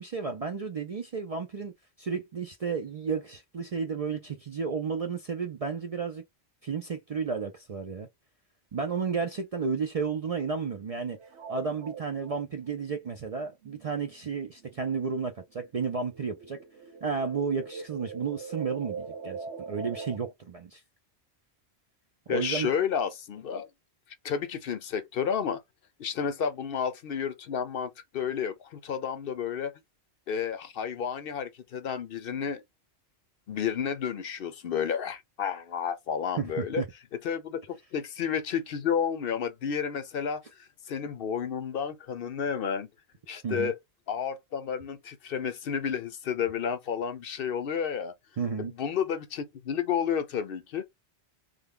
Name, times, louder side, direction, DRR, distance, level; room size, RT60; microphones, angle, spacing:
voice 1, 0.0-1.7 2.0-6.2 6.6-8.1 8.7-11.2 11.5-16.6 17.0-20.8 22.3-22.7 36.4-36.9 43.4-43.7 48.4-48.7, right 5 dB, 50° right, 0.4 m, -32 dB
sound 1, 11.2-15.3 15.6-20.2, right 5 dB, 80° right, 1.0 m, -42 dB
voice 2, 22.3-23.7 24.2-25.6 26.0-29.7 30.3-32.6 33.5-36.8 37.2-42.9 43.3-43.8 44.1-48.1 48.6-50.8, left 7 dB, 60° left, 0.7 m, -31 dB
3.3 x 2.2 x 3.6 m
omnidirectional pair, 1.1 m